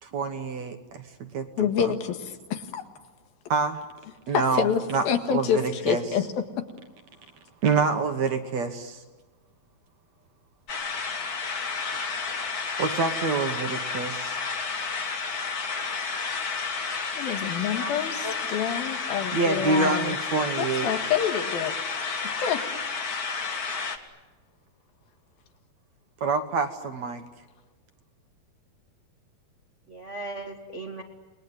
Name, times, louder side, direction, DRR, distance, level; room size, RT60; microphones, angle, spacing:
voice 1, 0.0-1.9 3.5-3.8 4.3-5.0 5.3-6.0 7.6-9.0 12.8-14.4 19.3-20.9 26.2-27.2, right 4 dB, 60° right, 7 dB, 2.1 m, -27 dB
voice 2, 1.6-2.8 4.3-6.3 17.2-20.2 20.6-21.8 22.4-22.6, left 8 dB, 75° left, 7 dB, 3.5 m, -27 dB
sound 1, 10.7-24.0, left 5 dB, 45° left, 1.2 m, -31 dB
voice 3, 17.6-18.3 29.9-31.0, right 1 dB, 85° right, 3 dB, 0.6 m, -37 dB
29.0 x 21.0 x 9.6 m, 1.2 s
omnidirectional pair, 4.3 m